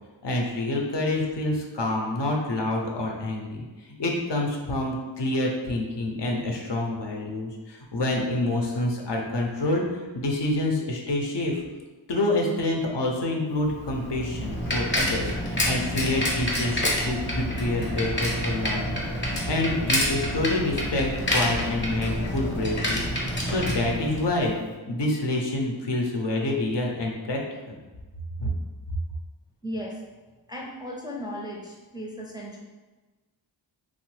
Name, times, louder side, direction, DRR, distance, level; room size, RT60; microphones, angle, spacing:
voice 1, 0.2-3.7 4.0-11.5 12.1-18.9 19.3-23.0 23.3-27.4 27.7-27.8 28.4-28.5, left 2 dB, 65° left, 0 dB, 0.6 m, -27 dB
Bicycle, 13.7-24.6, equal, 25° left, 0.7 m, -28 dB
voice 2, 29.6-30.0 30.5-32.6, equal, 10° right, -3 dB, 0.4 m, -36 dB
2.9 x 2.0 x 3.1 m, 1.2 s
wide cardioid pair, 45°, 47 cm